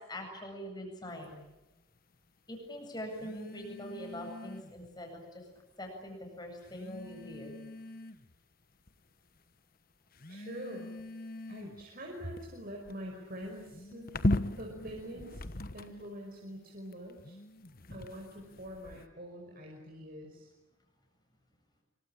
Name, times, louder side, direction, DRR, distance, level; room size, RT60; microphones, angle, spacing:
voice 1, 0.1-1.4 2.5-5.4 5.8-7.6, equal, 20° left, 3 dB, 7.9 m, -43 dB
sound 1, 1.1-1.3 3.1-4.9 5.9-6.0 6.6-8.4 8.9-9.4 10.1-16.2 16.9-19.1, left 1 dB, 45° left, 1.3 m, -39 dB
voice 2, 10.3-10.9 11.5-14.1 14.6-15.4 15.7-17.4 17.9-20.5, equal, 45° right, 0 dB, 5.2 m, -44 dB
26.0 x 24.5 x 8.8 m, 1.1 s
head